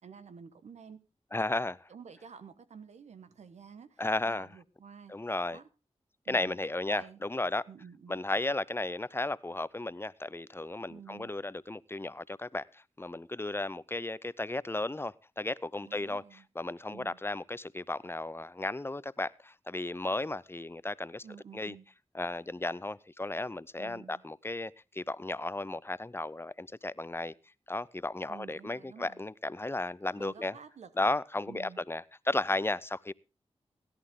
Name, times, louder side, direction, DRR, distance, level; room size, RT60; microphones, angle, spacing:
voice 1, 0.0-1.0 1.9-5.1 5.5-5.7 6.3-6.6 6.9-7.2 7.7-8.2 10.9-11.3 15.8-16.5 16.9-17.2 21.2-21.9 23.8-24.2 28.3-29.3 30.2-31.1 31.5-31.8, right 6 dB, 90° right, 1.1 m, -50 dB
voice 2, 1.3-1.9 4.0-4.5 5.1-5.6 6.3-7.6 8.1-16.2 16.6-21.2 21.5-21.7 22.1-27.3 27.7-30.6 31.0-33.1, left 2 dB, 20° left, 0.6 m, -34 dB
17.0 x 11.0 x 3.8 m
cardioid pair, 40°, 11 cm